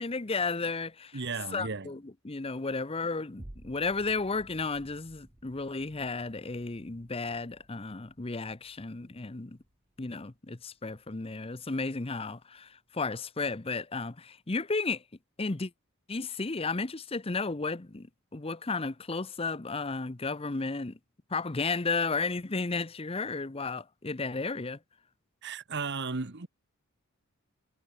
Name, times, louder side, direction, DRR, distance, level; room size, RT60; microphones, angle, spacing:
voice 1, 0.0-1.2 1.5-9.6 10.0-15.0 15.4-15.7 16.1-18.1 18.3-21.0 21.3-24.8, left 3 dB, 25° left, 0.7 m, -33 dB
voice 2, 1.1-1.9 25.4-26.5, right 4 dB, 50° right, 1.2 m, -35 dB
sound 1, 3.4-11.9 12.4-12.5, right 1 dB, 25° right, 1.1 m, -55 dB
head